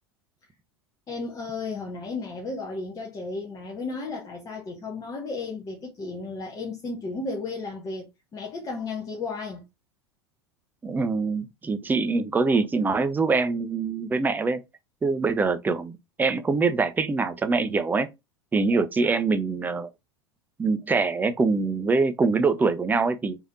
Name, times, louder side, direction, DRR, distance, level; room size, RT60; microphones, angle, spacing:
voice 1, 1.1-9.7, left 3 dB, 25° left, 0.8 m, -34 dB
voice 2, 10.8-14.6 15.0-18.1 18.5-19.9 20.6-23.4, right 4 dB, 15° right, 0.4 m, -24 dB
3.2 x 2.7 x 2.3 m
figure-of-eight pair, 80°, 14 cm